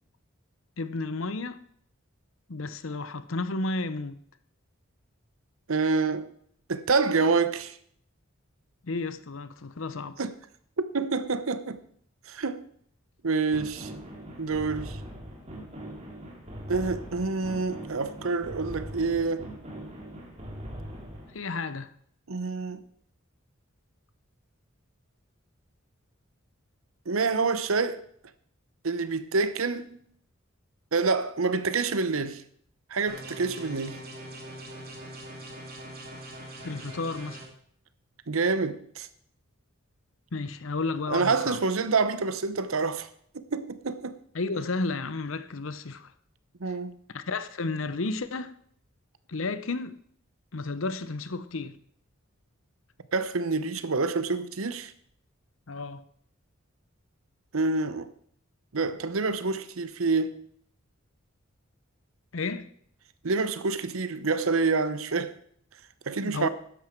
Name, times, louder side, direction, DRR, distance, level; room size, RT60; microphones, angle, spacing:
voice 1, 0.8-1.6 2.5-4.2 8.8-10.2 21.3-21.9 36.6-37.4 40.3-41.6 44.3-46.1 47.1-48.5 49.3-50.0 50.5-51.8 55.7-56.0 62.3-62.7 66.2-66.5, left 3 dB, 70° left, 0.8 m, -32 dB
voice 2, 5.7-6.3 6.7-7.8 10.2-10.3 10.9-11.8 12.3-12.6 13.2-13.9 14.4-15.0 16.7-19.4 22.3-22.8 27.1-28.0 28.8-30.0 30.9-32.4 32.9-34.0 38.3-39.1 41.1-43.1 43.3-44.2 46.6-47.0 53.1-54.9 57.5-58.1 58.7-60.4 63.2-65.3 66.1-66.5, right 4 dB, 80° right, 0.9 m, -27 dB
sound 1, 13.5-21.3, equal, 30° right, 2.6 m, -41 dB
sound 2, 33.1-37.4, right 1 dB, 45° right, 2.7 m, -42 dB
13.0 x 10.0 x 4.6 m
head